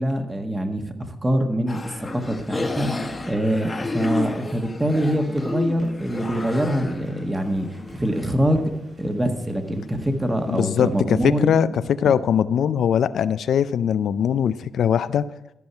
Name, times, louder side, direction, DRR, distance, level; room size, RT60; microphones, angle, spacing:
voice 1, 0.0-1.8 2.1-2.9 3.3-7.7 7.9-8.6 9.0-11.8, equal, 15° right, 5 dB, 1.5 m, -24 dB
sound 1, 1.7-8.3, left 3 dB, 30° left, 1.3 m, -31 dB
sound 2, 5.0-11.0, right 1 dB, 45° right, 4.8 m, -49 dB
voice 2, 10.4-15.3, left 8 dB, 75° left, 14 dB, 0.4 m, -21 dB
13.0 x 5.5 x 5.7 m, 0.91 s
cardioid pair, 65°, 0 cm